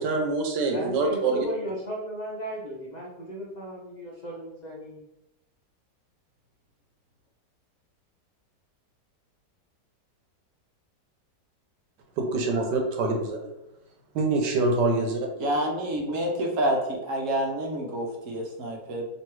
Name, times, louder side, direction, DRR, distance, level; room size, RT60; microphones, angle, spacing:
voice 1, 0.0-1.4 12.2-13.4 14.1-15.3, right 3 dB, 75° right, 2 dB, 1.4 m, -25 dB
voice 2, 0.7-5.0, equal, 60° left, -5 dB, 0.4 m, -35 dB
voice 3, 15.4-19.1, right 1 dB, 55° right, 1 dB, 1.0 m, -28 dB
3.2 x 3.0 x 4.5 m, 0.91 s
omnidirectional pair, 1.9 m